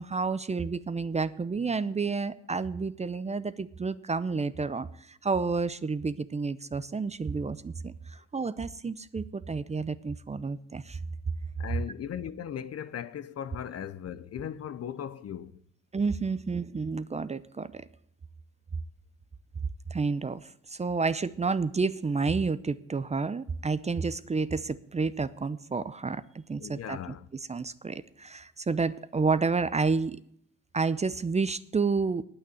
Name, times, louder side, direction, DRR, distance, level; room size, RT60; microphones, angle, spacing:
voice 1, 0.0-11.0 15.9-17.8 19.9-20.4 20.7-27.0 27.5-30.2 30.7-32.2, right 4 dB, 20° right, 0.6 m, -30 dB
voice 2, 11.6-15.6 26.6-27.3, left 9 dB, 55° left, 0.8 m, -38 dB
9.5 x 8.8 x 9.2 m
cardioid pair, 90°, 30 cm